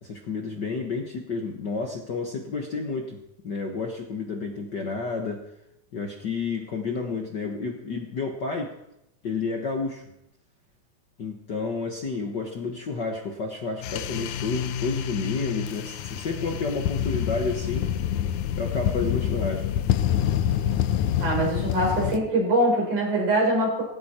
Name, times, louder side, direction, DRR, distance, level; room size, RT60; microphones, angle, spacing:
voice 1, 0.0-3.2 3.4-5.4 5.9-8.7 9.2-10.0 11.2-17.9 18.6-19.7, left 4 dB, 50° left, 2 dB, 1.4 m, -30 dB
sound 1, 13.8-22.2, left 10 dB, 80° left, 2.2 m, -27 dB
voice 2, 21.2-23.8, right 1 dB, 80° right, -2 dB, 6.9 m, -23 dB
17.5 x 15.5 x 4.4 m, 0.84 s
omnidirectional pair, 3.5 m